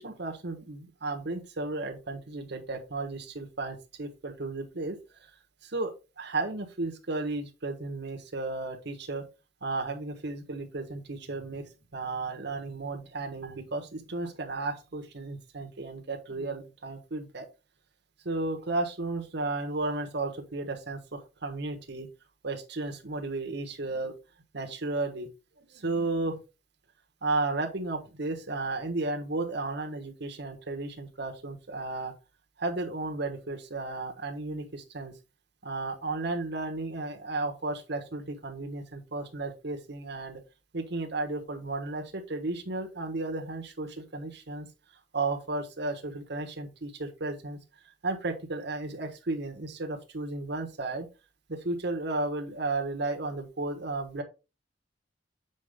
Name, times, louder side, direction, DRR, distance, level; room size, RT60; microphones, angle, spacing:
voice 1, 0.0-5.0 5.7-9.3 9.6-11.6 11.9-17.5 18.2-22.1 22.4-24.1 24.5-25.3 25.7-26.4 27.2-32.1 32.6-35.1 35.6-40.4 40.7-44.7 45.1-47.6 48.0-51.1 51.5-54.2, right 2 dB, 65° right, 3 dB, 1.3 m, -34 dB
6.6 x 5.0 x 3.5 m, 0.29 s
head